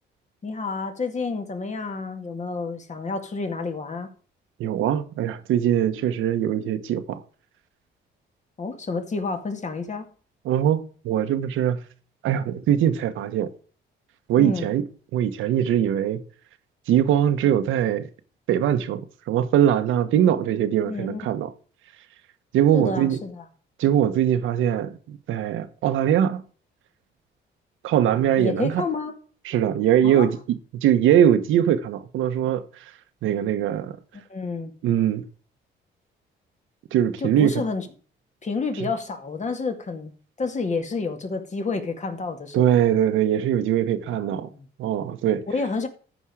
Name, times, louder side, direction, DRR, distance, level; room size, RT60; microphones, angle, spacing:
voice 1, 0.4-4.1 8.6-10.1 14.4-14.7 20.8-21.2 22.7-23.4 28.4-29.1 30.0-30.3 34.3-34.7 37.2-37.9 38.4-40.1 40.4-42.8 44.1-44.7 45.5-45.9, left 4 dB, 35° left, 2.1 m, -29 dB
voice 2, 4.6-7.2 10.4-11.8 12.2-13.5 14.3-14.8 15.1-16.2 16.9-18.1 18.5-19.0 19.3-21.5 22.5-23.2 23.8-26.4 27.8-28.8 29.4-30.4 30.7-32.9 33.2-34.0 34.8-35.2 36.9-37.6 38.8-38.9 42.5-44.5 44.8-45.4, right 10 dB, 85° right, 1.2 m, -21 dB
13.5 x 5.4 x 4.9 m
cardioid pair, 90°, 20 cm